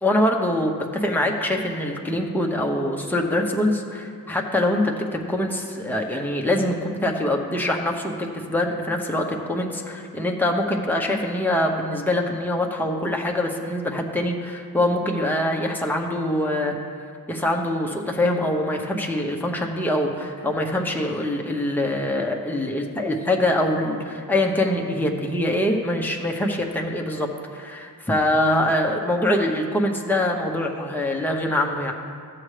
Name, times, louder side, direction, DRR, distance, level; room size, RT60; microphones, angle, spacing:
voice 1, 0.0-16.7 17.3-31.9, left 1 dB, 5° left, 0 dB, 0.9 m, -24 dB
13.5 x 7.5 x 3.3 m, 2.4 s
wide cardioid pair, 105°, 36 cm